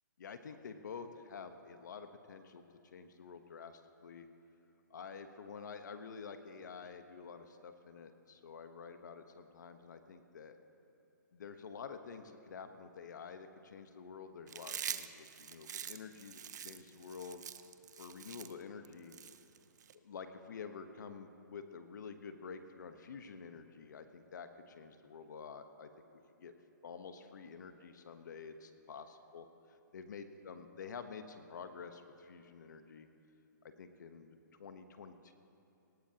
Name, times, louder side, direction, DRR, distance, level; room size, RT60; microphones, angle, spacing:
voice 1, 0.2-2.7 2.9-4.3 4.9-10.6 11.3-17.4 18.0-19.1 20.0-25.9 26.4-26.5 26.8-29.5 29.9-33.1 33.6-35.3, left 5 dB, 65° left, 8 dB, 1.1 m, -49 dB
Chewing mastication, 14.5-19.9, right 8 dB, 65° right, 0.7 m, -45 dB
18.5 x 18.5 x 2.9 m, 2.7 s
hypercardioid pair, 160°, 10 cm